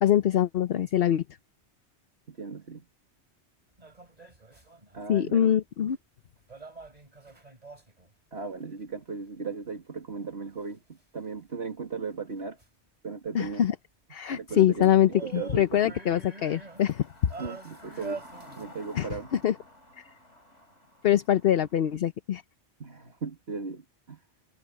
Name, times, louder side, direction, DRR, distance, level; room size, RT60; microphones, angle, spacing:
voice 1, 0.0-1.2 5.1-6.0 13.3-13.7 14.1-17.1 18.9-19.5 20.0-20.1 21.0-22.4, left 11 dB, 60° left, 0.9 m, -24 dB
voice 2, 2.3-2.8 4.9-5.6 8.3-12.6 13.0-13.6 14.3-14.9 15.2-16.0 17.4-18.2 18.6-19.3 22.8-24.2, right 4 dB, 60° right, 2.5 m, -37 dB
sound 1, 3.8-5.0 6.5-8.1 12.6-12.7 14.8-18.7, right 4 dB, 35° right, 3.6 m, -43 dB
sound 2, 15.1-22.0, left 1 dB, 80° left, 3.9 m, -53 dB
omnidirectional pair, 1.2 m